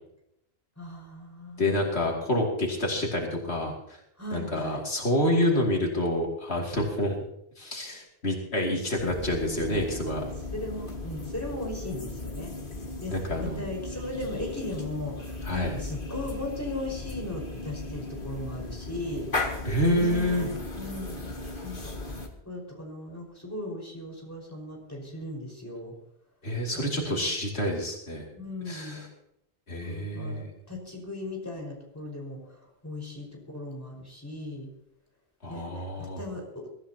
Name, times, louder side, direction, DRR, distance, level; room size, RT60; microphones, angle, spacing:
voice 1, 0.8-2.1 4.2-4.8 10.1-10.2 10.5-12.5 13.0-19.3 19.9-21.3 21.6-21.9 22.4-25.9 26.7-27.4 28.3-29.0 29.8-34.7 35.5-36.7, left 1 dB, 15° left, -1 dB, 5.1 m, -37 dB
voice 2, 1.6-4.0 4.3-7.2 7.6-10.2 13.1-13.7 15.4-15.8 19.6-20.5 26.4-28.3 28.7-29.1 29.7-30.5 35.4-36.2, left 1 dB, 80° left, -1 dB, 2.9 m, -28 dB
sound 1, 9.0-22.3, left 2 dB, 55° left, 2.1 m, -37 dB
23.0 x 14.5 x 2.9 m, 0.78 s
omnidirectional pair, 1.1 m